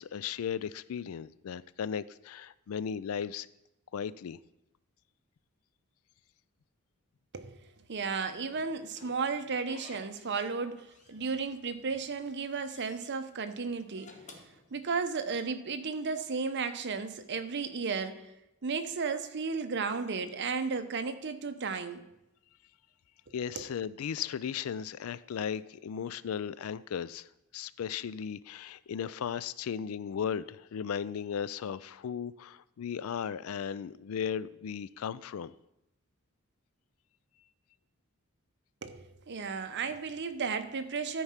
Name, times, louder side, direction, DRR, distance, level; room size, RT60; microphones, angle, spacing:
voice 1, 0.0-3.5 3.9-4.4 23.3-27.3 27.5-35.5, left 7 dB, 75° left, 0.4 m, -36 dB
voice 2, 7.9-14.2 14.7-18.2 18.6-22.0 23.6-23.7 38.8-41.2, right 5 dB, 55° right, 0.8 m, -34 dB
Slam / Squeak, 8.5-10.6 10.9-11.8 12.2-13.1 13.8-15.3, left 3 dB, 35° left, 1.3 m, -55 dB
13.0 x 4.7 x 5.7 m
head